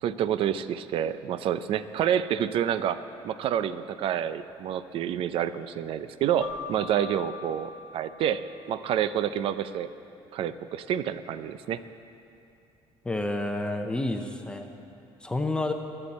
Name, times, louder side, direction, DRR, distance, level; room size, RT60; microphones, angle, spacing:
voice 1, 0.0-3.0 3.2-9.9 10.3-11.8, right 9 dB, 60° right, 13 dB, 0.6 m, -28 dB
Keyboard (musical), 6.4-8.9, left 6 dB, 20° right, 1.8 m, -42 dB
voice 2, 13.0-14.7 15.2-15.7, left 2 dB, 10° left, 4 dB, 0.7 m, -29 dB
24.5 x 8.9 x 4.2 m, 2.6 s
cardioid pair, 140°, 11 cm